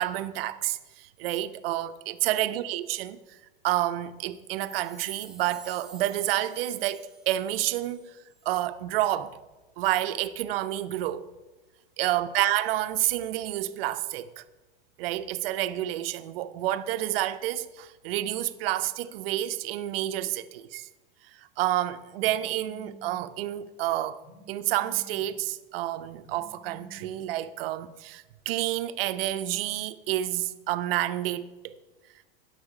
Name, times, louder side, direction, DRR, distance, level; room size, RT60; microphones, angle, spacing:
voice 1, 0.0-3.2 3.6-8.1 8.5-9.4 9.8-11.3 12.0-14.4 15.0-20.9 21.6-24.2 24.5-31.8, right 14 dB, 70° right, 0.6 m, -29 dB
Chime, 4.4-8.1 8.4-8.5, right 3 dB, ahead, 0.8 m, -49 dB
Telephone, 22.2-23.3 24.2-25.3 26.2-27.2, equal, 70° left, 2.7 m, -51 dB
11.5 x 5.6 x 4.8 m
supercardioid pair, 115°, 30 cm